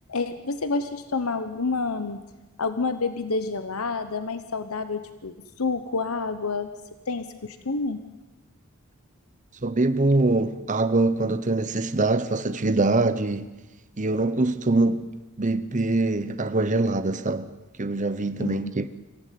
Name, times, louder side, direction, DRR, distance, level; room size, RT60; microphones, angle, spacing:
voice 1, 0.1-2.2 2.6-6.7 7.1-8.0 18.4-18.7, left 3 dB, 80° left, 1.1 m, -28 dB
voice 2, 9.6-13.5 14.0-15.1 15.4-17.5 17.8-18.9, right 2 dB, 35° right, 0.9 m, -23 dB
25.0 x 15.0 x 9.4 m
head